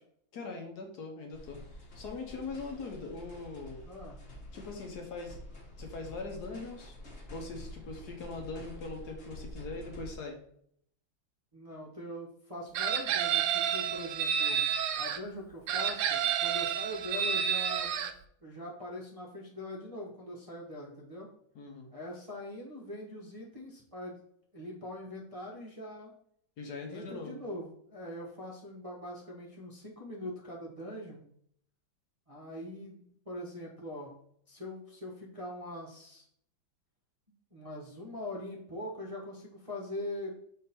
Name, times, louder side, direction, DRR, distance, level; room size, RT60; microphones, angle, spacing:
voice 1, 0.3-1.6 2.0-3.8 4.5-5.4 5.8-6.9 7.3-10.4 21.5-21.9 26.6-27.4, left 3 dB, 60° left, 2 dB, 1.4 m, -41 dB
sound 1, 1.3-10.1, left 1 dB, 40° left, 1.4 m, -48 dB
voice 2, 3.8-4.2 11.5-14.6 14.9-18.1 18.4-21.3 21.9-24.2 24.5-26.1 26.9-31.2 32.3-34.1 34.5-36.2 37.5-40.4, left 1 dB, 25° right, -4 dB, 0.8 m, -42 dB
Chicken rooster, 12.8-15.2 15.7-18.1, right 8 dB, 80° right, 1.3 m, -30 dB
6.5 x 3.8 x 4.3 m, 0.68 s
omnidirectional pair, 2.1 m